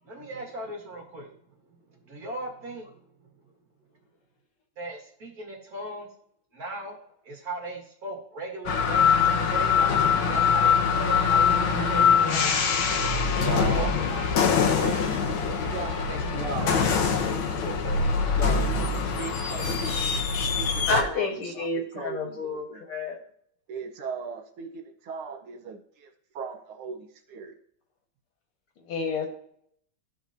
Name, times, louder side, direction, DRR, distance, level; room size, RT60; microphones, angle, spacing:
voice 1, 0.0-1.4 1.7-3.1 3.4-3.5 4.8-6.1 6.5-7.0 7.2-10.0 10.3-12.5 13.0-15.0 15.4-17.2 17.5-18.0, right 2 dB, 45° right, 0 dB, 2.3 m, -38 dB
sound 1, 8.7-21.0, left 6 dB, 70° left, 1.7 m, -23 dB
Trumpet, 13.0-20.2, left 2 dB, 25° left, 2.9 m, -47 dB
voice 2, 13.4-13.9 16.3-16.9 18.4-18.6 18.9-22.9 23.7-27.5, right 5 dB, 80° right, 3 dB, 2.0 m, -38 dB
voice 3, 20.9-23.2 28.9-29.3, left 3 dB, 90° left, 1 dB, 2.4 m, -29 dB
14.5 x 5.1 x 2.8 m, 0.66 s
omnidirectional pair, 2.3 m